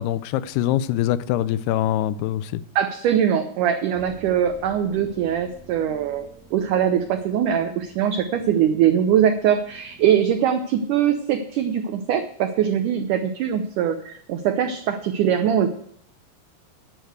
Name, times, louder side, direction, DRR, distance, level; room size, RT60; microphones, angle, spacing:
voice 1, 0.0-2.6, left 12 dB, 90° left, 2.6 m, -23 dB
voice 2, 2.8-15.7, right 9 dB, 90° right, 1.8 m, -22 dB
sound 1, 3.9-10.4, equal, 20° right, 2.3 m, -48 dB
10.5 x 6.5 x 7.8 m
omnidirectional pair, 4.5 m